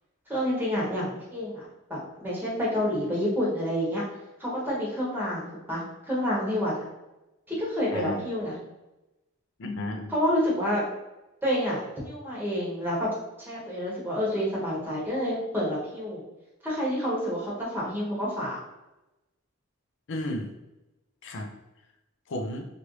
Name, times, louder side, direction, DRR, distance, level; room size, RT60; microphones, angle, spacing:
voice 1, 0.3-4.0 4.4-6.7 7.5-8.5 10.1-10.8 11.4-13.1 13.4-16.2 16.6-18.6, equal, 10° right, -6 dB, 1.0 m, -28 dB
voice 2, 7.9-8.2 9.6-10.2 20.1-20.5 21.2-21.5 22.3-22.7, left 1 dB, 60° left, 4 dB, 0.5 m, -33 dB
3.0 x 2.5 x 3.1 m, 0.98 s
head